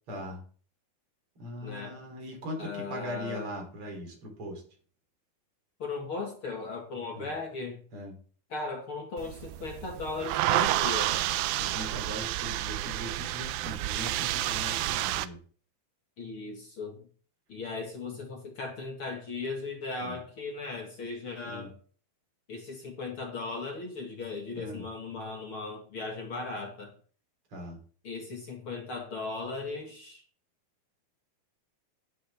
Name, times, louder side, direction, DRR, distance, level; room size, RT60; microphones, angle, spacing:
voice 1, 0.1-0.4 1.4-4.6 7.1-7.3 7.9-8.1 11.5-15.4 20.0-20.2 21.4-21.7 24.5-24.8 27.5-27.8, equal, 35° right, 1 dB, 4.0 m, -40 dB
voice 2, 1.6-2.0 2.6-3.5 5.8-7.8 8.5-11.2 16.2-17.0 17.5-21.7 22.5-26.9 28.0-30.2, left 3 dB, 45° left, 1 dB, 2.1 m, -37 dB
sound 1, 9.2-15.3, right 15 dB, 80° right, 2.2 m, -30 dB
11.0 x 11.0 x 3.6 m, 0.43 s
omnidirectional pair, 4.5 m